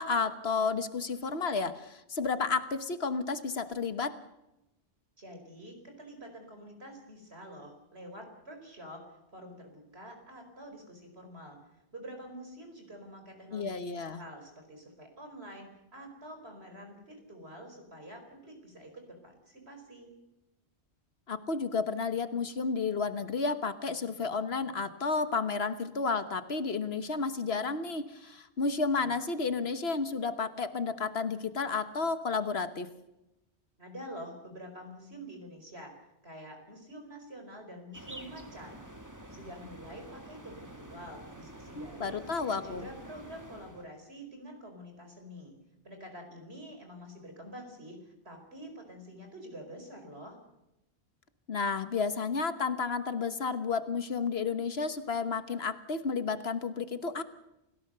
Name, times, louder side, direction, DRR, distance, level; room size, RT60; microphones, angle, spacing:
voice 1, 0.0-4.2 13.5-14.2 21.3-32.9 41.8-42.9 51.5-57.2, left 4 dB, 65° left, 11 dB, 1.5 m, -32 dB
voice 2, 5.2-9.1 9.3-11.6 11.9-13.8 14.2-20.1 33.8-36.0 36.2-38.8 39.3-42.2 42.5-45.5 45.8-50.4, equal, 70° right, 5 dB, 5.2 m, -47 dB
sound 1, 37.9-43.9, right 1 dB, 15° right, 2.0 m, -48 dB
29.0 x 16.5 x 6.8 m, 0.92 s
omnidirectional pair, 1.1 m